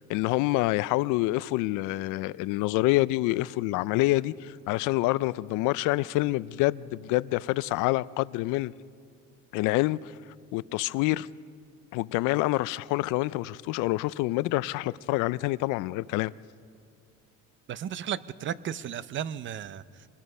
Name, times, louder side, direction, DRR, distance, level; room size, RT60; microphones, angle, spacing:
voice 1, 0.0-8.7 9.5-10.1 10.5-11.3 11.9-16.3, left 19 dB, 80° left, 0.5 m, -27 dB
voice 2, 17.7-20.1, right 9 dB, 40° right, 0.6 m, -34 dB
25.0 x 19.0 x 5.5 m
cardioid pair, 140°, 31 cm